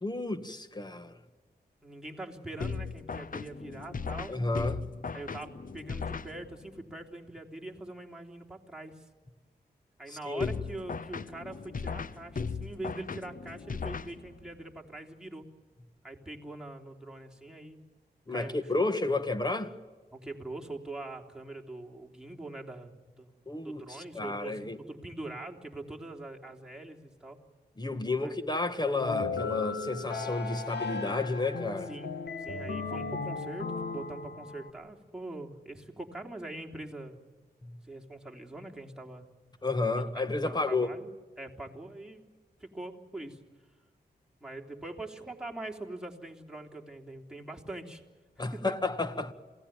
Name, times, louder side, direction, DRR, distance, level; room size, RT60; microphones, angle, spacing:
voice 1, 0.0-1.1 4.3-5.1 10.1-10.5 18.3-19.7 23.5-24.8 27.8-31.9 37.6-37.8 39.6-40.9 48.4-49.3, left 3 dB, 25° left, 1.8 m, -31 dB
voice 2, 1.8-4.3 5.1-9.0 10.0-15.5 16.0-17.8 18.3-18.6 20.1-23.3 23.6-27.4 28.2-28.3 31.9-32.1 32.4-37.2 37.9-39.3 39.9-41.1 41.4-42.2 42.6-43.4 44.4-48.0 48.4-48.7, right 2 dB, 5° right, 3.4 m, -43 dB
sound 1, 2.6-6.8 10.4-14.6, left 5 dB, 55° left, 0.9 m, -38 dB
sound 2, 29.0-34.7, left 4 dB, 85° left, 2.2 m, -36 dB
27.5 x 17.5 x 9.1 m
cardioid pair, 65°, 17 cm